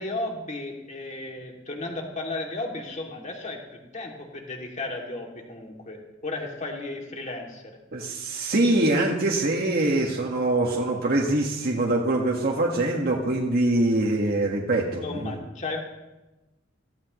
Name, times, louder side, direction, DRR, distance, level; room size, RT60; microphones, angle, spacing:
voice 1, 0.0-7.8 15.0-15.8, left 2 dB, 40° left, 0 dB, 2.7 m, -34 dB
voice 2, 7.9-15.4, right 2 dB, 50° right, -1 dB, 1.7 m, -24 dB
24.0 x 15.5 x 3.2 m, 1.0 s
head